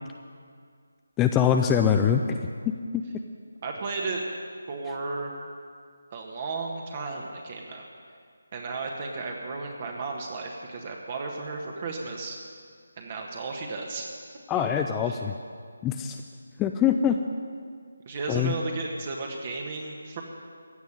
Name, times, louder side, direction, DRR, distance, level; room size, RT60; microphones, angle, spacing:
voice 1, 1.2-2.4 2.7-3.0 14.5-15.3 15.8-16.2 16.6-17.2 18.3-18.5, left 8 dB, 10° left, 5 dB, 0.4 m, -23 dB
voice 2, 3.6-4.2 4.7-5.3 6.1-7.8 8.5-12.4 13.0-14.1 15.0-15.1 18.0-20.2, right 3 dB, 35° right, 1 dB, 1.5 m, -34 dB
16.0 x 7.2 x 9.8 m, 2.1 s
figure-of-eight pair, 160°, 0 cm